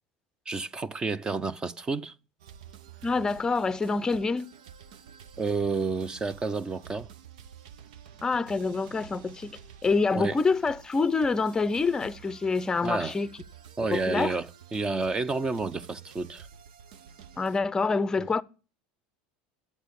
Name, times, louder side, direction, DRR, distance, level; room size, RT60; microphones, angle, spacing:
voice 1, 0.5-2.1 5.4-7.1 10.1-10.4 12.8-13.2 13.8-16.5 18.2-18.3, right 4 dB, 20° right, 0.7 m, -30 dB
sound 1, 2.4-17.6, right 8 dB, 85° right, 0.9 m, -50 dB
voice 2, 3.0-4.5 8.2-13.3 13.9-14.3 17.4-18.4, left 4 dB, 15° left, 0.6 m, -26 dB
11.0 x 8.2 x 8.3 m
supercardioid pair, 125°, 4 cm